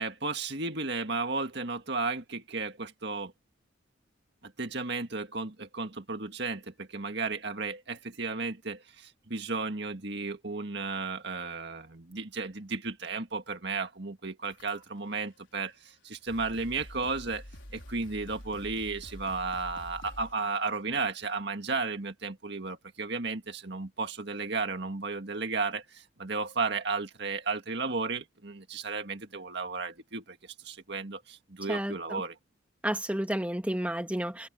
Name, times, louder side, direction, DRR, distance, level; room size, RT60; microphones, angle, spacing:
voice 1, 0.0-3.3 4.4-17.4 17.7-32.4, right 3 dB, 55° right, 2.0 m, -34 dB
sound 1, 14.5-15.1 15.9-16.0 16.3-20.5, equal, 65° left, 4.5 m, -47 dB
voice 2, 31.7-32.2 32.8-34.5, right 1 dB, 5° right, 2.0 m, -31 dB
head